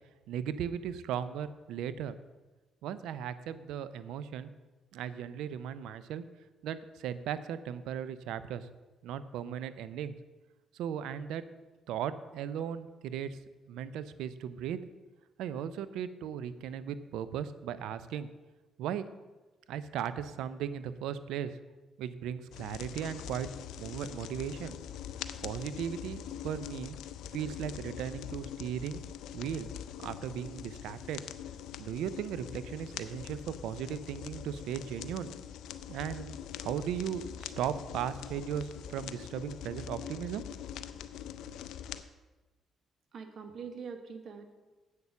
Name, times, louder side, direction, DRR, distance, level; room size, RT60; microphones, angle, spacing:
voice 1, 0.3-2.2 2.8-4.5 4.9-6.2 6.6-8.7 9.0-10.2 10.7-11.4 11.9-13.4 13.7-14.8 15.4-18.3 18.8-19.1 19.7-21.6 22.0-23.5 23.8-24.8 25.4-27.0 27.3-29.0 29.3-29.7 30.0-31.2 31.8-35.3 35.9-40.4, right 9 dB, 90° right, 14 dB, 0.5 m, -37 dB
sound 1, 22.5-42.0, left 10 dB, 85° left, 0.5 m, -43 dB
voice 2, 43.1-44.6, right 5 dB, 60° right, 7 dB, 1.2 m, -43 dB
8.2 x 6.6 x 7.0 m, 1.2 s
cardioid pair, 90°, 0 cm